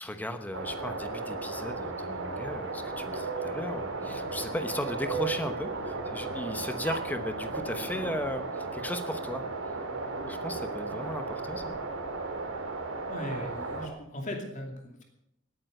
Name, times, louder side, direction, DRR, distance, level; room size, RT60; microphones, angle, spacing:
voice 1, 0.0-9.4 10.3-11.8, left 1 dB, 10° left, 8 dB, 1.0 m, -36 dB
sound 1, 0.5-13.9, right 3 dB, 80° right, 2.6 m, -36 dB
sound 2, 1.5-7.2, right 5 dB, 55° right, 2.0 m, -39 dB
voice 2, 13.1-15.0, left 1 dB, 40° left, 2 dB, 2.7 m, -38 dB
19.0 x 9.2 x 6.6 m, 0.81 s
head